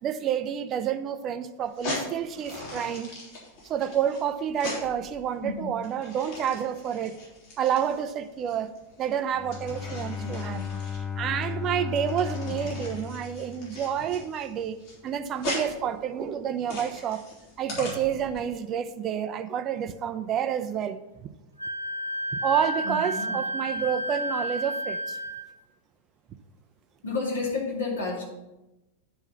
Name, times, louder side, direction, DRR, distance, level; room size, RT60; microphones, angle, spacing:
voice 1, 0.0-3.2 3.6-7.2 7.6-10.6 11.2-14.8 15.0-17.3 17.6-21.3 22.4-25.2, right 9 dB, 30° right, 11 dB, 0.5 m, -29 dB
sound 1, 1.6-18.4, left 2 dB, 50° left, 3.1 m, -39 dB
Bowed string instrument, 9.3-14.1, left 7 dB, 20° left, 0.5 m, -35 dB
voice 2, 10.2-10.7 12.4-12.5 22.8-23.4 27.0-28.2, left 3 dB, 70° left, -2 dB, 2.3 m, -31 dB
Wind instrument woodwind instrument, 21.6-25.5, equal, 85° right, 0.9 m, -31 dB
9.5 x 4.5 x 5.5 m, 0.99 s
figure-of-eight pair, 90°, 0 cm